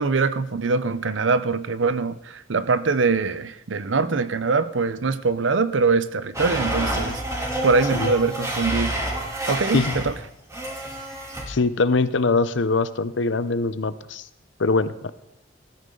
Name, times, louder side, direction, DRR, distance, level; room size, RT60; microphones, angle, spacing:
voice 1, 0.0-7.2 7.6-9.0 9.5-10.1, right 4 dB, 90° right, 0.7 m, -23 dB
Domestic sounds home sounds, 6.3-10.1 10.5-11.4, right 1 dB, 15° right, 3.0 m, -28 dB
voice 2, 11.5-14.2 14.6-15.1, left 3 dB, 70° left, 0.7 m, -22 dB
19.0 x 13.0 x 3.9 m
head